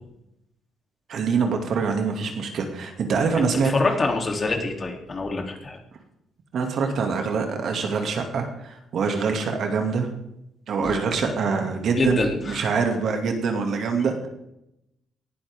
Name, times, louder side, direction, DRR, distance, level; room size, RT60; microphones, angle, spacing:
voice 1, 1.1-3.7 6.5-10.1 10.7-14.3, right 5 dB, 65° right, 4 dB, 2.4 m, -25 dB
voice 2, 3.3-5.8 10.8-11.0 12.0-12.7, left 3 dB, 35° left, 2 dB, 3.2 m, -26 dB
18.0 x 11.5 x 3.7 m, 0.84 s
cardioid pair, 90°, 0 cm